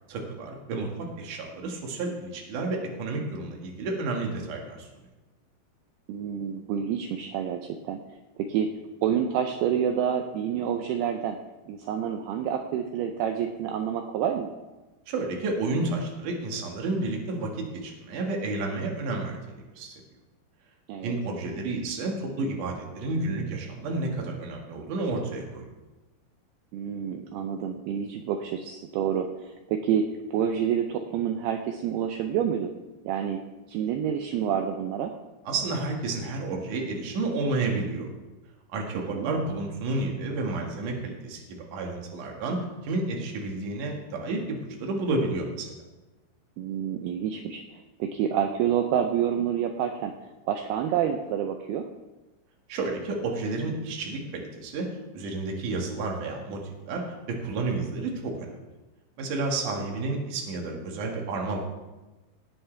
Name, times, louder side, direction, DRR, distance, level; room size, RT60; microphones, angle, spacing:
voice 1, 0.1-4.9 15.1-19.9 21.0-25.6 35.4-38.1 38.7-45.7 52.7-54.9 55.1-58.5 59.2-61.6, right 3 dB, 55° right, 0 dB, 2.9 m, -31 dB
voice 2, 6.1-8.0 8.4-8.7 9.0-11.4 11.7-14.5 20.9-21.2 26.7-30.1 30.3-32.7 33.1-33.4 33.7-35.2 39.1-39.3 46.6-47.6 48.0-50.1 50.5-51.9 59.7-59.8, right 8 dB, 85° right, 5 dB, 2.2 m, -28 dB
18.5 x 10.0 x 3.4 m, 1.1 s
omnidirectional pair, 5.4 m